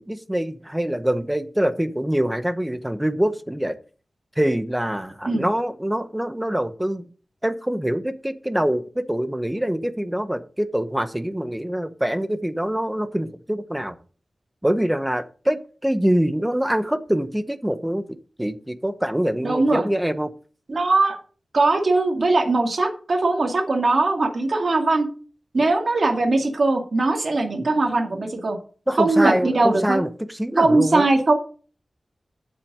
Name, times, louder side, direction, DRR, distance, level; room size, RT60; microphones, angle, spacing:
voice 1, 0.0-3.8 4.4-7.0 7.4-14.0 14.6-18.0 18.4-20.3 28.9-31.1, equal, 10° right, 12 dB, 0.9 m, -24 dB
voice 2, 19.4-19.8 20.7-21.2 21.5-25.1 25.5-28.6 29.0-30.0 30.6-31.3, right 2 dB, 55° right, 3 dB, 2.2 m, -20 dB
8.3 x 6.1 x 6.7 m, 0.39 s
wide cardioid pair, 95°, 0 cm